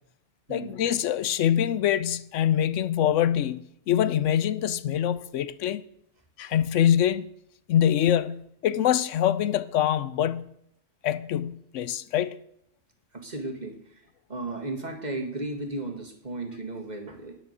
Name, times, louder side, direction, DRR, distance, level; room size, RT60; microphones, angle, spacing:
voice 1, 0.5-5.8 6.4-7.3 7.7-10.5 11.0-12.3, left 10 dB, 80° left, 0.9 m, -24 dB
voice 2, 13.1-14.0 14.3-17.4, right 2 dB, 35° right, 1.8 m, -35 dB
9.6 x 9.4 x 6.6 m
omnidirectional pair, 1.3 m